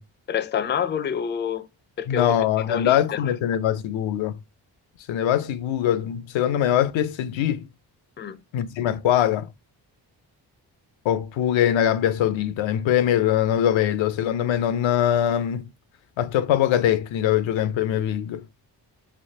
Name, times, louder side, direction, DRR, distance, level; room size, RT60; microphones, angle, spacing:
voice 1, 0.3-1.7 2.0-3.3 8.2-8.4, left 8 dB, 25° left, 0.4 m, -28 dB
voice 2, 2.1-4.3 5.1-7.6 8.5-9.5 11.0-15.7 16.2-18.4, left 10 dB, 75° left, 0.5 m, -22 dB
3.3 x 2.8 x 2.7 m
supercardioid pair, 40°, 46 cm